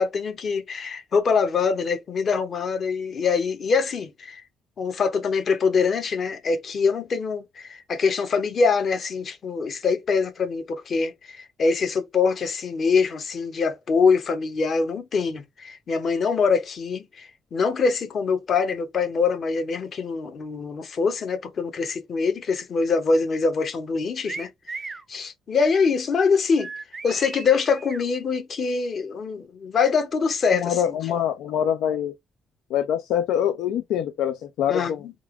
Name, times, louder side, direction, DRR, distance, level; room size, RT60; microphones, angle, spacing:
voice 1, 0.0-4.4 4.8-24.8 25.1-26.7 27.0-31.2 34.7-35.1, left 5 dB, 55° left, 1.0 m, -24 dB
sound 1, 24.3-25.1 26.6-28.0, right 4 dB, 30° right, 0.5 m, -37 dB
voice 2, 30.5-32.1 32.7-35.0, left 9 dB, 90° left, 0.4 m, -25 dB
3.4 x 2.5 x 3.2 m
cardioid pair, 90°, 0 cm